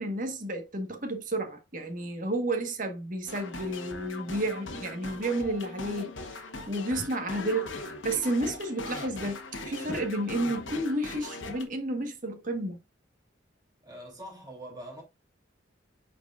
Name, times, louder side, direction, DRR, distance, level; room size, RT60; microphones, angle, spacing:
voice 1, 0.0-6.1 6.7-12.8, right 1 dB, 40° right, 1.4 m, -31 dB
sound 1, 3.3-11.6, left 2 dB, 75° left, 1.2 m, -40 dB
voice 2, 13.8-15.0, right 1 dB, 20° right, 2.9 m, -43 dB
8.9 x 4.5 x 2.5 m
head